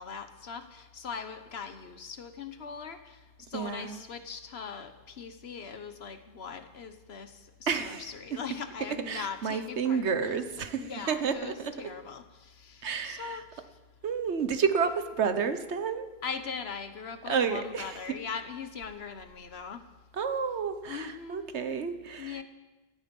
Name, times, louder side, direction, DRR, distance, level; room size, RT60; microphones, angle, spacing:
voice 1, 0.0-3.2 3.5-10.4 10.8-13.6 16.2-19.8 20.8-21.5 22.2-22.4, left 6 dB, 65° left, 9 dB, 1.3 m, -40 dB
voice 2, 3.5-4.0 7.7-8.1 9.1-11.7 12.8-13.4 14.0-16.1 17.3-18.0 20.1-22.4, right 6 dB, 80° right, 9 dB, 1.3 m, -30 dB
17.0 x 13.5 x 5.4 m, 1.2 s
omnidirectional pair, 1.1 m